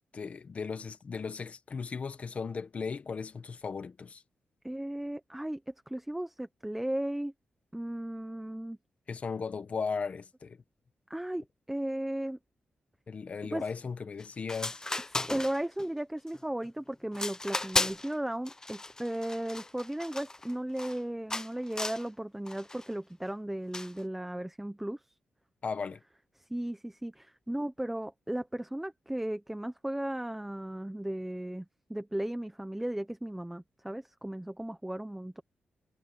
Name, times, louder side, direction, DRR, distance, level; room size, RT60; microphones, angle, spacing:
voice 1, 0.1-4.2 9.1-10.6 13.1-14.8 25.6-26.0, left 5 dB, 45° left, 1.3 m, -36 dB
voice 2, 4.6-7.3 7.7-8.8 11.1-12.4 13.4-13.6 15.2-25.0 26.5-35.4, right 1 dB, 5° right, 1.0 m, -36 dB
sound 1, 14.2-14.3 14.5-15.9 16.3-16.7 17.1-18.1 18.5-21.0 21.3-22.1 22.5-22.9 23.7-24.0, left 2 dB, 20° left, 1.0 m, -35 dB
wide cardioid pair, 115°, 3 cm